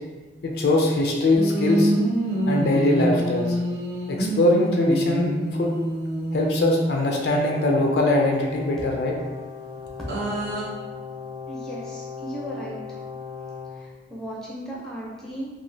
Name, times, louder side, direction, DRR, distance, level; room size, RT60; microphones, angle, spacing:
voice 1, 0.4-1.9 2.5-3.6 4.1-5.7 6.3-9.2, left 1 dB, 60° left, 0 dB, 0.4 m, -21 dB
sound 1, 1.3-7.4 10.1-10.6, right 1 dB, 65° right, 0.6 m, -26 dB
Brass instrument, 6.9-13.8, left 6 dB, 25° right, 0.7 m, -37 dB
voice 2, 11.5-12.8 13.7-15.5, right 1 dB, 5° left, -6 dB, 0.5 m, -36 dB
3.0 x 2.3 x 2.6 m, 1.3 s
head